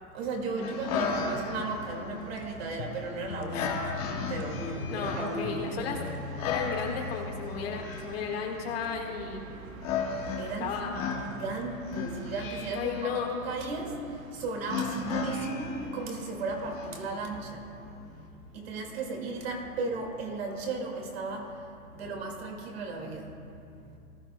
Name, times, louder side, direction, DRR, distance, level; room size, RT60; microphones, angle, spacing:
voice 1, 0.1-4.0 4.3-5.8 10.4-10.8 11.3-13.1 13.4-14.0 14.3-17.6 18.5-21.5 21.9-23.3, right 3 dB, 40° right, 1 dB, 2.1 m, -35 dB
sound 1, 0.6-18.3, left 5 dB, 25° left, 1.3 m, -36 dB
sound 2, 1.3-17.4, right 4 dB, 65° right, 1.2 m, -48 dB
sound 3, 2.8-8.1, left 9 dB, 75° left, 0.5 m, -41 dB
voice 2, 4.9-6.0 6.4-9.4 10.6-11.1 12.7-13.3, left 6 dB, 40° left, 0 dB, 1.6 m, -34 dB
19.0 x 13.0 x 2.2 m, 2.5 s
hypercardioid pair, 175°, 44 cm